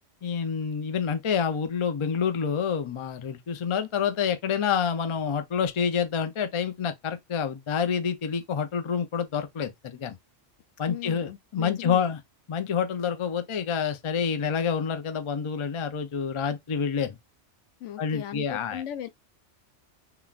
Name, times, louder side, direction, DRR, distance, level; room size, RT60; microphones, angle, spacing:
voice 1, 0.2-10.2 10.8-12.2 12.5-17.2 18.0-18.8, left 7 dB, 55° left, 0.3 m, -28 dB
voice 2, 10.9-12.1 17.8-19.1, left 11 dB, 85° left, 0.9 m, -37 dB
3.8 x 2.2 x 2.3 m
omnidirectional pair, 1.2 m